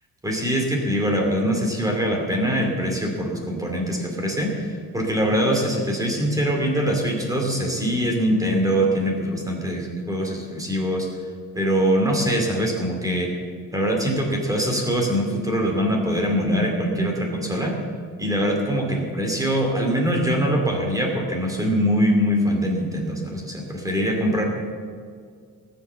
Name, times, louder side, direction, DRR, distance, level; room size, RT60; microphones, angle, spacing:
voice 1, 0.2-11.1 11.5-13.3 13.7-17.8 18.2-24.4, equal, 10° right, 0 dB, 2.6 m, -23 dB
18.5 x 7.9 x 7.0 m, 2.1 s
cardioid pair, 165°, 33 cm